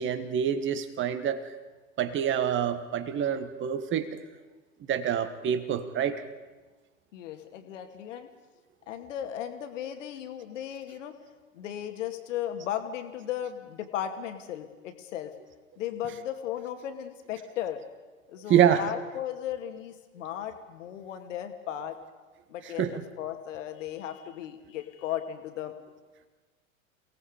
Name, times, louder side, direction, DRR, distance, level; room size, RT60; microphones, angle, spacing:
voice 1, 0.0-1.4 2.0-4.2 4.9-6.2 18.5-18.8 22.8-23.0, right 9 dB, 30° right, 10 dB, 1.6 m, -26 dB
voice 2, 7.1-8.3 8.9-11.2 11.5-15.3 15.8-17.8 18.3-22.0 22.5-25.7, left 10 dB, 60° left, 7 dB, 2.3 m, -36 dB
28.5 x 18.0 x 5.1 m, 1.3 s
figure-of-eight pair, 95°, 41 cm